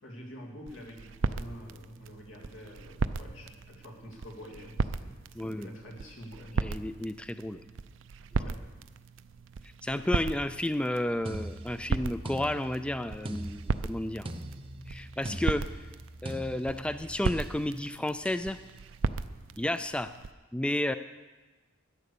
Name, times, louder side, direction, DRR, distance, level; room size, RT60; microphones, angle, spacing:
voice 1, 0.0-6.7 8.3-8.6, equal, 85° left, -1 dB, 2.9 m, -47 dB
sound 1, 0.7-20.3, right 4 dB, 75° right, 0.5 m, -37 dB
voice 2, 5.4-5.7 6.6-7.6 9.8-14.3 14.9-15.7 16.2-18.6 19.6-20.1 20.5-21.0, left 1 dB, 5° left, 11 dB, 0.3 m, -32 dB
sound 2, 11.3-17.5 18.3-18.5, right 1 dB, 30° right, 0.8 m, -42 dB
12.5 x 10.0 x 6.8 m, 1.2 s
head